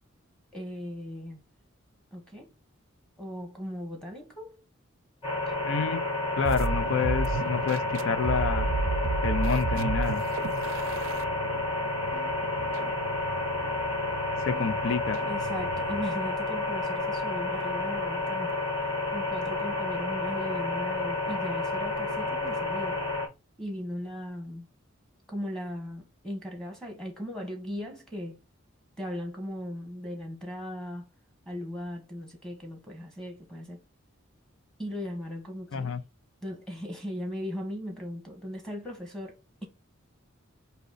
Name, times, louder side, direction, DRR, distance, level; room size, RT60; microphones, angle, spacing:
voice 1, 0.5-1.4 2.1-2.5 3.2-4.6 5.5-5.6 14.9-15.0 15.3-18.6 19.1-23.0 23.6-24.7 25.3-28.4 29.0-31.1 31.4-33.8 34.8-35.9 36.4-39.7, equal, 5° left, 1.2 m, -38 dB
sound 1, 5.2-23.3, left 2 dB, 30° left, 1.8 m, -30 dB
voice 2, 5.6-6.0 6.4-8.7 9.2-10.2 14.4-15.2 35.7-36.0, left 5 dB, 65° left, 0.5 m, -28 dB
sound 2, 6.4-16.1, right 3 dB, 70° right, 0.4 m, -34 dB
4.0 x 2.8 x 4.0 m
head